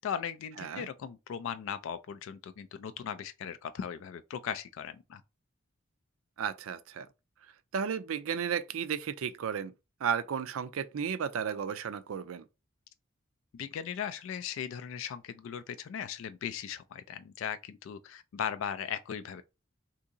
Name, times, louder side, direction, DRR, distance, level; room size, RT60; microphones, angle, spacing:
voice 1, 0.0-5.2 13.5-19.4, left 8 dB, 80° left, 0.3 m, -38 dB
voice 2, 6.4-7.1 7.7-9.7 10.0-12.4, right 7 dB, 90° right, 0.4 m, -33 dB
2.8 x 2.6 x 3.7 m
head